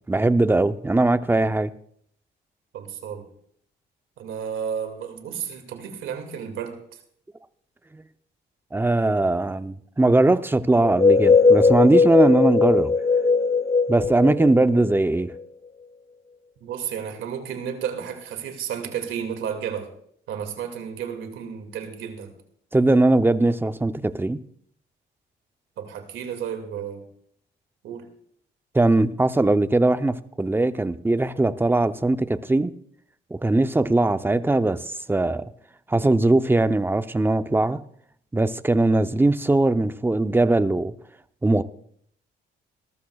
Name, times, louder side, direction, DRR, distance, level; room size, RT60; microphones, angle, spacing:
voice 1, 0.1-1.7 7.9-8.0 8.7-12.9 13.9-15.3 22.7-24.4 28.7-32.7 33.3-35.5 35.9-37.8 38.3-40.9 41.4-41.6, right 2 dB, 10° right, 0.6 m, -20 dB
voice 2, 2.7-3.3 4.2-6.8 16.6-19.9 20.3-22.3 25.8-27.0 27.8-28.1, right 8 dB, 85° right, 2.2 m, -32 dB
sound 1, 10.8-15.4, left 4 dB, 30° left, 1.2 m, -19 dB
19.0 x 13.0 x 2.3 m
cardioid pair, 90°, 20 cm